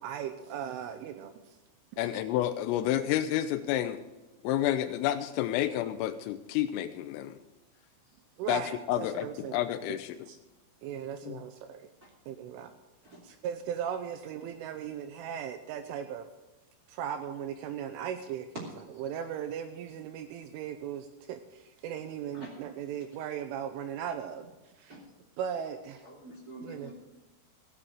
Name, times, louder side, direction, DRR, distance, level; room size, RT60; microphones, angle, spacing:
voice 1, 0.0-1.6 8.4-9.6 9.9-10.0 10.3-10.4 10.8-11.9 12.3-12.7 13.2-16.3 16.9-18.7 19.0-25.0 25.4-26.1 26.6-26.9, right 9 dB, 80° right, 8 dB, 3.0 m, -38 dB
voice 2, 2.0-4.0 4.4-7.4 8.5-8.6 8.9-10.2 11.2-11.4, left 12 dB, 85° left, 7 dB, 3.2 m, -30 dB
voice 3, 26.0-26.9, right 1 dB, 25° right, -3 dB, 2.5 m, -45 dB
16.5 x 7.5 x 6.6 m, 1.1 s
omnidirectional pair, 6.0 m